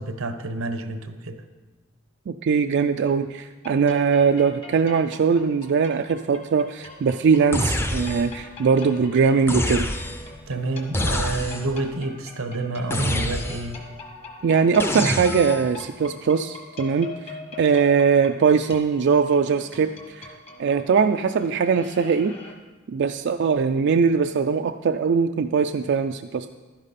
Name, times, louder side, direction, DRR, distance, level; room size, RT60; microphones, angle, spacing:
voice 1, 0.0-1.4 10.5-13.8, right 2 dB, 85° right, 0.9 m, -29 dB
voice 2, 2.3-9.9 14.4-20.3 20.6-22.3 22.9-26.5, right 5 dB, 60° right, 0.4 m, -21 dB
sound 1, 3.6-22.5, left 3 dB, 30° left, 1.3 m, -43 dB
sound 2, 7.5-8.4 9.5-10.3 10.9-11.8 12.9-13.8 14.8-15.7, left 1 dB, 10° left, 0.6 m, -26 dB
12.0 x 10.5 x 4.2 m
head